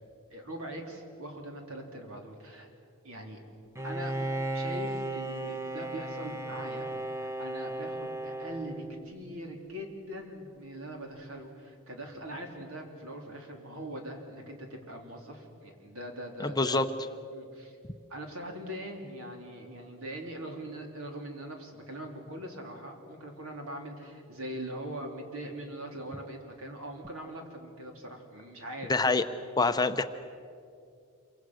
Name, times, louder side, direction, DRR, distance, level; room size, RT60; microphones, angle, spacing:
voice 1, 0.3-2.7 3.0-3.4 3.8-4.2 4.5-6.9 7.2-16.8 17.3-17.8 18.1-29.1, right 1 dB, 75° right, 2 dB, 3.8 m, -42 dB
Bowed string instrument, 3.8-9.3, right 1 dB, 15° right, 0.9 m, -35 dB
voice 2, 16.4-16.8 28.9-29.2 29.6-30.0, left 3 dB, 20° left, 9 dB, 0.7 m, -25 dB
27.5 x 24.5 x 6.4 m, 2.5 s
head